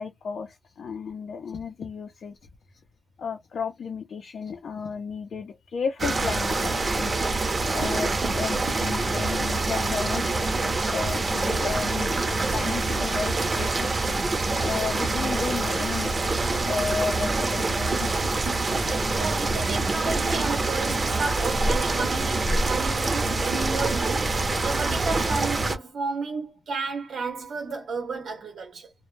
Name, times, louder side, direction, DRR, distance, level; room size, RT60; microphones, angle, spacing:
voice 1, 0.0-2.4 3.2-7.2 7.7-13.9 14.6-16.3 16.7-18.1, left 5 dB, 90° left, 0.4 m, -33 dB
sound 1, 6.0-25.8, right 3 dB, 45° right, 0.6 m, -25 dB
voice 2, 7.1-7.8 19.2-28.9, right 4 dB, 85° right, 0.7 m, -32 dB
2.1 x 2.0 x 3.0 m
wide cardioid pair, 100°, 0 cm